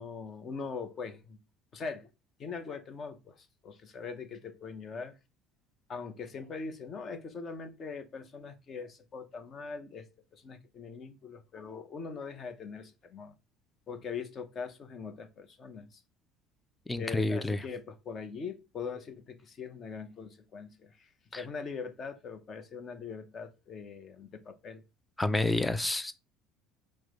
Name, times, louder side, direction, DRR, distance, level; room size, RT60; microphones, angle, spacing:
voice 1, 0.0-1.4 1.7-2.1 2.4-5.1 5.9-13.3 13.9-16.0 17.0-24.8, left 5 dB, 35° left, 0.8 m, -42 dB
voice 2, 16.9-17.6 21.3-21.4 25.2-26.1, left 2 dB, 10° left, 0.4 m, -29 dB
4.7 x 2.1 x 4.8 m
cardioid pair, 130°, 0 cm